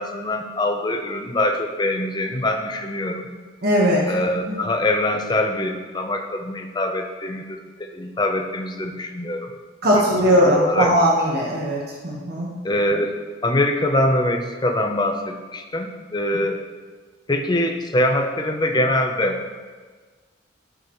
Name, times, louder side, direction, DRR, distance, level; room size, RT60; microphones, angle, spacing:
voice 1, 0.0-3.3 4.1-9.5 9.9-10.9 12.6-13.1 13.4-16.6 17.3-19.4, left 1 dB, 20° left, 3 dB, 0.7 m, -23 dB
voice 2, 3.6-4.0 9.8-12.5, equal, 55° right, -4 dB, 1.4 m, -19 dB
13.0 x 6.3 x 3.2 m, 1.4 s
head